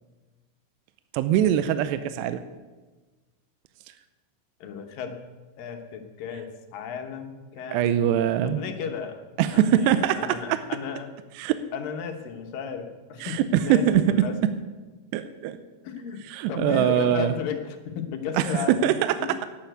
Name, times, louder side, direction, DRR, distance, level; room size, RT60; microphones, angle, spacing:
voice 1, 1.1-2.4 7.7-8.6 9.4-10.6 11.4-11.6 13.2-14.3 15.1-15.6 16.3-17.3 18.3-19.4, right 10 dB, 85° right, 11 dB, 2.8 m, -22 dB
voice 2, 4.6-5.2 5.6-8.0 8.4-9.2 9.5-11.1 11.7-14.3 15.8-16.2 16.5-18.7 19.2-19.4, left 7 dB, 65° left, 5 dB, 2.5 m, -34 dB
11.5 x 10.0 x 9.1 m, 1.3 s
omnidirectional pair, 4.9 m